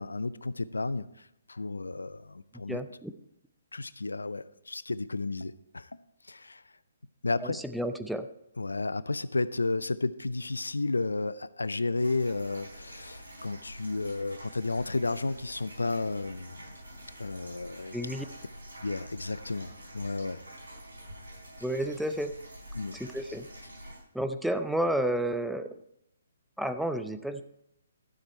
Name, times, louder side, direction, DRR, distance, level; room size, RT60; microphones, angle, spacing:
voice 1, 0.0-2.8 3.7-5.9 6.3-6.6 7.2-7.6 8.6-16.6 17.2-18.0 18.8-20.4 22.7-23.0, left 3 dB, 80° left, 17 dB, 0.5 m, -32 dB
voice 2, 2.7-3.1 7.4-8.3 17.9-18.3 21.6-22.3 22.9-23.5 24.1-25.7 26.6-27.4, right 1 dB, ahead, 9 dB, 0.5 m, -31 dB
sound 1, 11.9-24.0, equal, 80° right, 4.3 m, -47 dB
12.5 x 7.6 x 4.5 m, 0.80 s
figure-of-eight pair, 135°, 0 cm